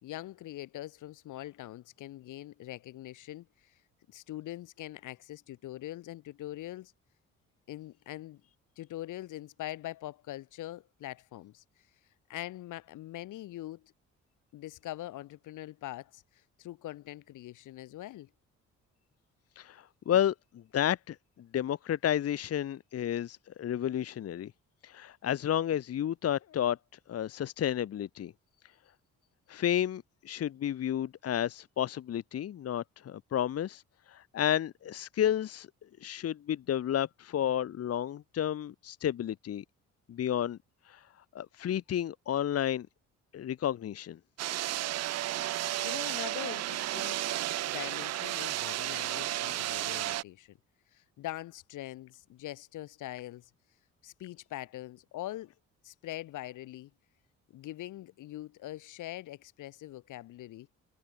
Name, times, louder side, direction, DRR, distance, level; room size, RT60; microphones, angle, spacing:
voice 1, 0.0-3.7 4.1-6.9 7.7-8.4 8.8-11.6 12.3-13.9 14.5-18.3 45.8-47.3 47.6-50.6 50.9-53.5 54.0-55.5 55.8-56.9 57.5-60.7, left 15 dB, 85° left, 2.4 m, -43 dB
voice 2, 19.6-24.5 24.8-26.8 27.1-28.3 29.5-33.8 34.1-35.7 36.0-39.6 40.1-40.6 40.8-41.1 41.3-42.9 43.3-44.2, left 10 dB, 50° left, 1.0 m, -31 dB
sound 1, 44.4-50.2, right 14 dB, 60° right, 0.5 m, -33 dB
cardioid pair, 90°, 30 cm